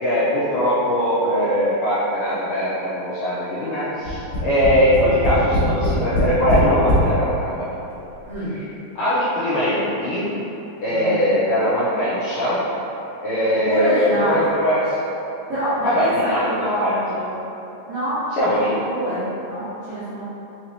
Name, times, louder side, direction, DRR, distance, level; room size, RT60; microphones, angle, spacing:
voice 1, 0.0-7.8 8.5-8.7 9.0-10.3 10.8-12.6 13.2-15.0 15.8-17.0 18.4-18.7, equal, 75° left, -11 dB, 2.0 m, -21 dB
Tap, 4.0-7.1 7.9-8.0 8.3-8.4, equal, 55° left, 1.3 m, -20 dB
voice 2, 8.2-8.6 10.9-11.1 13.7-14.4 15.5-16.3 16.6-17.3 17.9-20.2, equal, 70° right, -16 dB, 1.4 m, -26 dB
5.8 x 3.0 x 2.7 m, 2.9 s
omnidirectional pair, 4.5 m